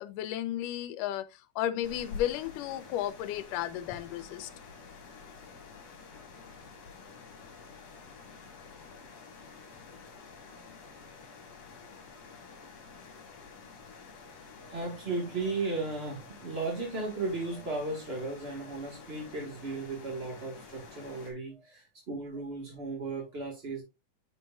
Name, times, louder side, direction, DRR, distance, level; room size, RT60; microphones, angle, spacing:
voice 1, 0.0-4.5, left 12 dB, 85° left, 2.3 m, -34 dB
sound 1, 1.8-21.3, left 5 dB, 65° left, 3.4 m, -49 dB
voice 2, 14.6-23.8, right 3 dB, 40° right, 0.9 m, -35 dB
9.4 x 5.4 x 2.4 m
omnidirectional pair, 3.7 m